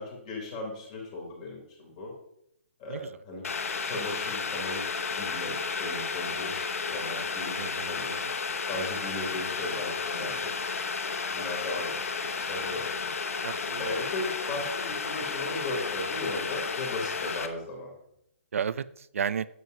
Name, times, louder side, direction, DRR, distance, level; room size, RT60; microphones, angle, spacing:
voice 1, 0.0-2.1 2.8-3.4 3.8-4.8 5.1-8.1 8.7-10.5 11.3-11.9 12.2-13.1 13.8-17.9, left 2 dB, 30° left, 0 dB, 2.9 m, -36 dB
Boiling, 3.4-17.5, left 5 dB, 80° left, 0.8 m, -32 dB
voice 2, 7.5-8.3 13.4-13.8 18.5-19.5, right 7 dB, 75° right, 17 dB, 0.4 m, -33 dB
9.3 x 7.9 x 2.7 m, 0.75 s
hypercardioid pair, 165°, 8 cm